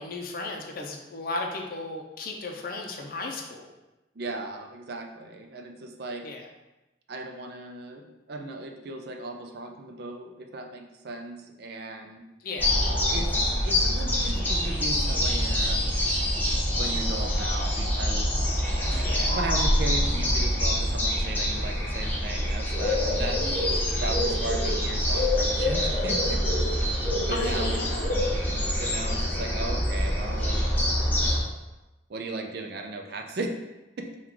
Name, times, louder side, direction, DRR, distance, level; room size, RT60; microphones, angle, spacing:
voice 1, 0.0-3.7 6.2-6.5 12.4-12.8 19.0-19.4 27.3-28.5, left 2 dB, 50° left, 2 dB, 0.5 m, -35 dB
voice 2, 4.2-6.3 7.1-12.2 13.1-15.8 16.6-18.3 19.3-23.6 24.0-26.4 27.1-27.8 28.8-30.6 32.1-33.5 34.0-34.1, right 2 dB, 55° right, 4 dB, 0.4 m, -36 dB
sound 1, 12.6-31.4, left 1 dB, 10° left, 0.9 m, -25 dB
3.7 x 2.3 x 4.5 m, 1.0 s
head